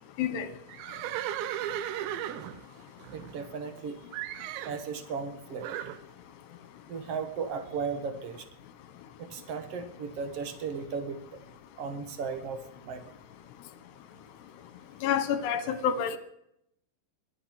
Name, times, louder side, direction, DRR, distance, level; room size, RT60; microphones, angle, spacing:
Livestock farm animals working animals, 0.7-3.8 4.1-4.8 5.6-6.0, right 12 dB, 85° right, 3.1 m, -36 dB
voice 1, 3.1-4.0 4.6-5.8 6.9-8.5 9.2-11.4 11.8-13.1, right 5 dB, 60° right, 8 dB, 1.6 m, -36 dB
voice 2, 15.0-16.2, left 8 dB, 75° left, 12 dB, 3.2 m, -28 dB
22.5 x 8.6 x 6.2 m, 0.76 s
omnidirectional pair, 5.0 m